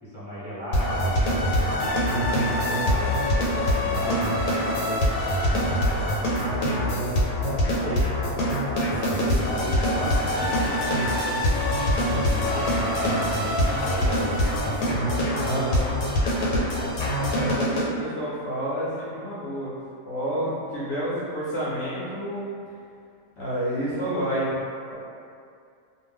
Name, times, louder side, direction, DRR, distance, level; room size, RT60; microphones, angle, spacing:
voice 1, 0.0-4.3 5.2-6.0 7.4-8.1 9.0-10.6 11.8-14.5 14.9-15.1, equal, 10° left, -14 dB, 1.0 m, -35 dB
sound 1, 0.7-17.9, equal, 85° left, 1.1 m, -24 dB
sound 2, 8.9-14.9, equal, 45° right, 0.4 m, -37 dB
voice 2, 15.3-16.9 17.4-19.7 20.1-22.5 23.4-24.5, equal, 60° left, -9 dB, 0.7 m, -30 dB
2.4 x 2.1 x 3.4 m, 2.4 s
omnidirectional pair, 1.5 m